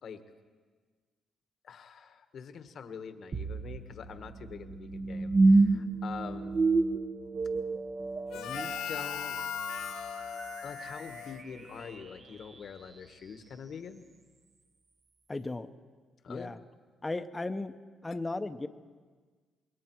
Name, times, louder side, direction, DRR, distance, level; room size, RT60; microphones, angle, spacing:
voice 1, 1.6-6.6 8.3-9.4 10.6-14.0 16.2-16.6, left 6 dB, 60° left, 9 dB, 1.3 m, -44 dB
sound 1, 3.3-12.4, right 3 dB, 35° right, 0.9 m, -30 dB
Harmonica, 8.3-12.1, left 9 dB, 80° left, 0.7 m, -39 dB
voice 2, 15.3-15.7 16.3-16.6 17.0-17.7 18.0-18.7, left 2 dB, 20° left, 10 dB, 0.8 m, -35 dB
26.5 x 21.5 x 4.6 m, 1.5 s
cardioid pair, 90°, 0 cm